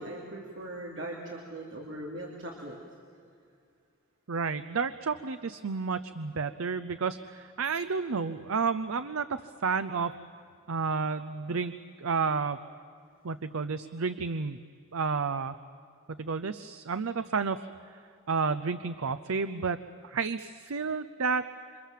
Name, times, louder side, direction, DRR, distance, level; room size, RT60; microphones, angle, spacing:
voice 1, 0.0-2.8, right 1 dB, 60° right, -2 dB, 3.1 m, -40 dB
voice 2, 4.3-10.1 10.7-11.7 12.0-12.6 13.2-14.6 14.9-15.5 16.1-17.7 18.3-19.8 20.0-21.4, right 5 dB, 85° right, 11 dB, 0.7 m, -31 dB
28.5 x 24.5 x 7.5 m, 2.4 s
head